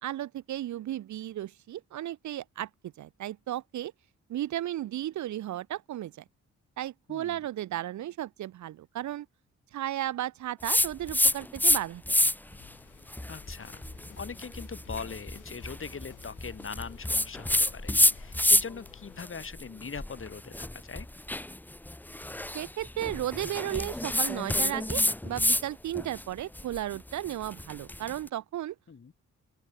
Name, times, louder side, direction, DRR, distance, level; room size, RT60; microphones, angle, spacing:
voice 1, 0.0-3.9 4.3-6.2 6.8-9.3 9.7-12.2 22.5-28.8, right 13 dB, 70° right, 0.6 m, -34 dB
voice 2, 7.1-7.4 13.3-13.8 14.2-21.1 28.9-29.1, left 5 dB, 45° left, 4.0 m, -41 dB
sound 1, 10.6-11.8 12.1-12.6 13.1-18.9 19.2-25.6 25.9-28.1, left 1 dB, 5° left, 0.8 m, -28 dB
sound 2, 12.5-19.2, left 10 dB, 85° left, 4.6 m, -54 dB
open air
cardioid pair, 90°, 30 cm